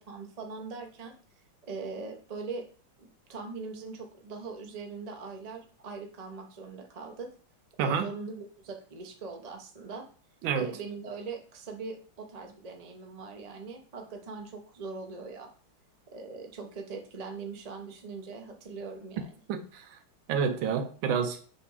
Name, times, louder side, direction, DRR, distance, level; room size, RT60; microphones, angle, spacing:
voice 1, 0.1-1.1 1.6-2.7 3.0-7.3 7.8-10.0 10.5-15.5 16.1-19.3, right 4 dB, 55° right, 0.4 m, -41 dB
voice 2, 10.4-10.8 19.5-20.0 20.3-21.4, right 6 dB, 75° right, 1.3 m, -29 dB
6.5 x 3.4 x 4.7 m
omnidirectional pair, 2.4 m